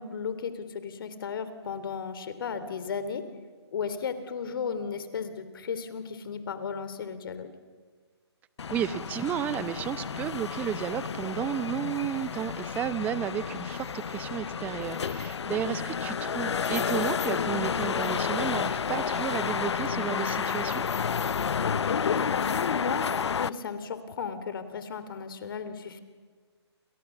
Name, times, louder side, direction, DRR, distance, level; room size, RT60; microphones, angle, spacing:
voice 1, 0.0-3.2 3.7-7.5 15.6-15.8 21.6-26.0, left 6 dB, 55° left, 11 dB, 3.1 m, -34 dB
sound 1, 8.6-23.5, left 6 dB, 75° left, 0.8 m, -30 dB
voice 2, 8.7-20.8, right 10 dB, 10° right, 15 dB, 0.7 m, -33 dB
29.5 x 28.5 x 7.2 m, 1.5 s
hypercardioid pair, 155°, 14 cm